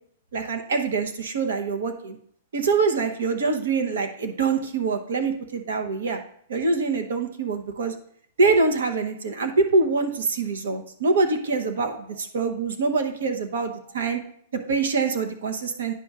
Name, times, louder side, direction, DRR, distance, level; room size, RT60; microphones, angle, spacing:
voice 1, 0.3-2.2 2.5-6.2 6.5-7.9 8.4-12.1 12.3-14.2 14.5-15.9, right 4 dB, 90° right, 6 dB, 0.9 m, -24 dB
9.8 x 5.4 x 2.4 m, 0.63 s
supercardioid pair, 180°, 0 cm